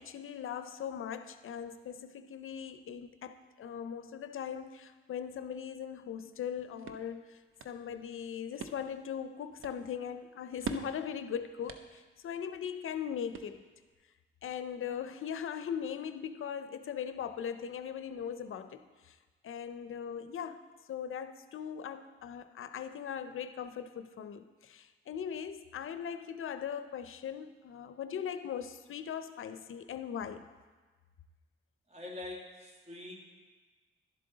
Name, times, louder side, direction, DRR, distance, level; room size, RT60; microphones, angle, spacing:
voice 1, 0.0-13.6 14.4-19.2 19.4-20.6 20.9-30.4, left 8 dB, 80° left, 10 dB, 0.5 m, -40 dB
sound 1, 6.3-13.9, right 5 dB, 80° right, 0.7 m, -47 dB
voice 2, 31.9-33.2, left 2 dB, 30° right, -1 dB, 1.9 m, -44 dB
11.5 x 7.5 x 3.9 m, 1.4 s
wide cardioid pair, 100°, 21 cm